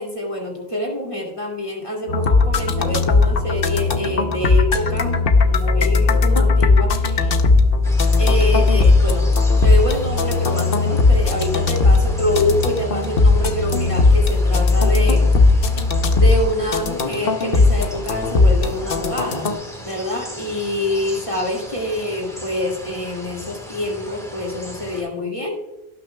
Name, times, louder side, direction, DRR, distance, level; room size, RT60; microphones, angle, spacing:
voice 1, 0.0-7.3 8.2-9.3 9.6-15.3 16.1-19.5 19.8-25.6, left 1 dB, 30° left, -1 dB, 2.5 m, -26 dB
sound 1, 2.1-19.5, left 3 dB, 60° left, 1.0 m, -17 dB
sound 2, 7.8-25.0, right 1 dB, 5° left, 1.8 m, -37 dB
18.0 x 6.1 x 2.3 m, 1.0 s
omnidirectional pair, 1.1 m